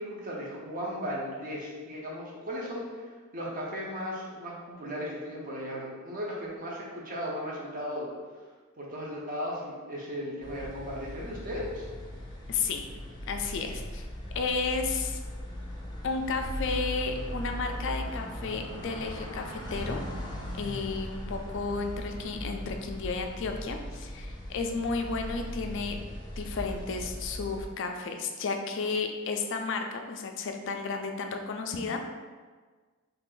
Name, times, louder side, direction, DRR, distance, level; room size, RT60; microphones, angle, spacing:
voice 1, 0.0-8.1 8.8-11.9, equal, 40° right, -3 dB, 0.7 m, -36 dB
sound 1, 10.4-27.7, left 1 dB, 20° left, 0.6 m, -39 dB
voice 2, 12.5-12.8 13.3-14.0 14.3-15.2 16.0-20.0 20.5-26.1 26.4-32.0, left 4 dB, 60° left, 4 dB, 0.4 m, -32 dB
3.3 x 2.5 x 3.7 m, 1.4 s
head